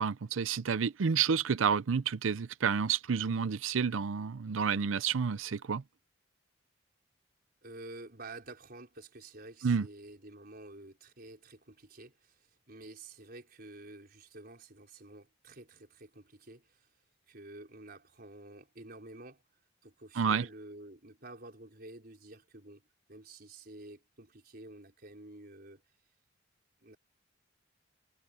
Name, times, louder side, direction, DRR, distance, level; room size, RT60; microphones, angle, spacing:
voice 1, 0.0-5.8 9.6-9.9 20.2-20.5, right 6 dB, 85° right, 0.5 m, -30 dB
voice 2, 7.6-16.9 17.3-19.4 19.8-22.8 23.1-25.8 26.8-27.0, right 2 dB, 50° right, 4.9 m, -50 dB
head